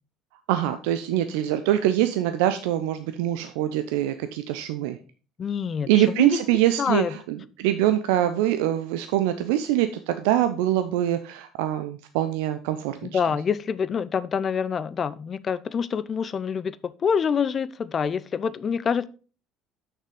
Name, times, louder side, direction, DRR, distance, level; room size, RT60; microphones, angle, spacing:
voice 1, 0.5-5.0 5.9-13.2, right 12 dB, 70° right, 0.5 m, -24 dB
voice 2, 5.4-6.4 6.8-7.1 13.0-19.1, left 6 dB, 40° left, 0.6 m, -26 dB
6.6 x 6.1 x 5.0 m
hypercardioid pair, 65°, 0 cm